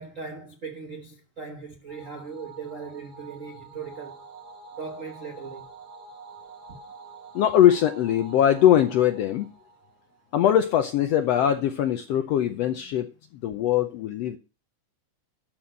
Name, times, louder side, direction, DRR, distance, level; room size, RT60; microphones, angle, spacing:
voice 1, 0.0-4.2 4.8-5.7, right 5 dB, 70° right, 0.7 m, -38 dB
sound 1, 1.9-10.5, right 4 dB, 35° right, 2.0 m, -47 dB
voice 2, 7.3-9.5 10.3-13.1 13.4-14.4, left 10 dB, 80° left, 1.4 m, -21 dB
12.5 x 4.5 x 7.5 m
omnidirectional pair, 3.6 m